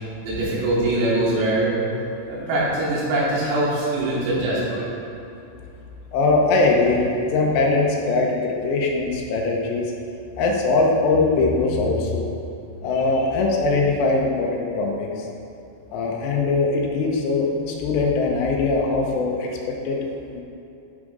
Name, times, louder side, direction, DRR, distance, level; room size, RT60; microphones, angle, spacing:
voice 1, 0.2-1.8 2.3-4.9, right 1 dB, 80° right, -8 dB, 5.2 m, -22 dB
voice 2, 6.1-9.9 10.4-12.3 12.8-15.1 15.9-20.0 20.3-20.4, left 3 dB, 75° left, -1 dB, 2.7 m, -21 dB
12.5 x 5.1 x 5.0 m, 2.7 s
omnidirectional pair, 5.9 m